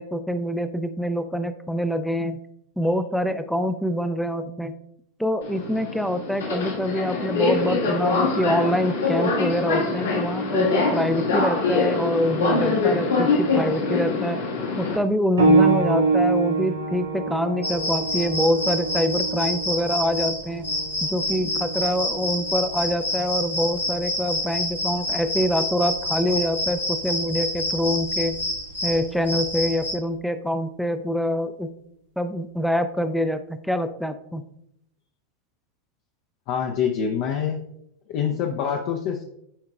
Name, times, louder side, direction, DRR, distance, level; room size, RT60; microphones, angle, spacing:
voice 1, 0.0-2.4 2.8-4.7 5.2-14.4 14.8-20.7 21.0-28.4 28.8-31.7 32.2-34.4, equal, ahead, 10 dB, 0.5 m, -25 dB
Subway metro underground, 5.4-15.0, left 3 dB, 65° left, 1.7 m, -24 dB
sound 1, 15.4-25.6 26.5-26.7 27.4-27.5, right 3 dB, 75° right, 2.5 m, -26 dB
sound 2, 17.6-29.9, left 1 dB, 90° left, 2.5 m, -28 dB
voice 2, 36.5-37.6 38.1-39.2, left 7 dB, 45° left, 2 dB, 0.6 m, -25 dB
9.9 x 4.7 x 2.3 m, 0.75 s
figure-of-eight pair, 90°, 0 cm